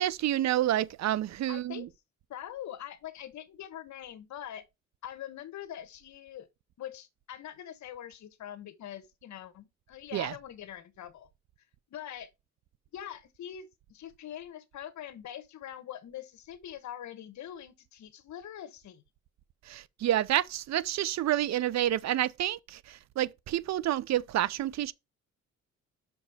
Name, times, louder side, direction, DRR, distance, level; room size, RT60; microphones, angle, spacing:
voice 1, 0.0-1.9 10.1-10.3 19.7-24.9, right 13 dB, 60° right, 0.6 m, -29 dB
voice 2, 1.5-1.9 2.3-4.6 5.0-6.5 6.8-11.3 11.9-12.3 12.9-19.0, left 11 dB, 70° left, 1.2 m, -43 dB
6.1 x 5.2 x 4.8 m
cardioid pair, 90°, 30 cm